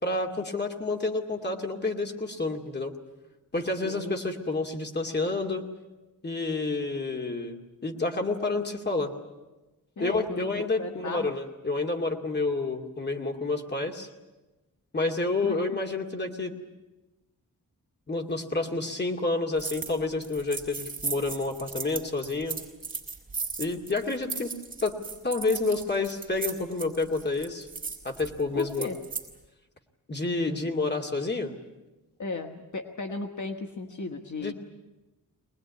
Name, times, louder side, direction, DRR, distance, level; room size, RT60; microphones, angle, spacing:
voice 1, 0.0-2.9 3.5-5.6 6.2-9.1 10.0-14.1 14.9-16.5 18.1-22.6 23.6-25.0 25.2-27.7 28.0-28.9 30.1-31.5 34.4-34.5, left 3 dB, 30° left, 3 dB, 2.4 m, -29 dB
voice 2, 10.0-11.3 15.4-15.8 28.5-29.0 32.2-34.5, left 3 dB, 55° left, 4 dB, 1.6 m, -36 dB
sound 1, 19.6-19.9 20.2-29.3, right 5 dB, 25° right, 4.5 m, -36 dB
24.0 x 20.0 x 9.6 m, 1.1 s
wide cardioid pair, 155°, 35 cm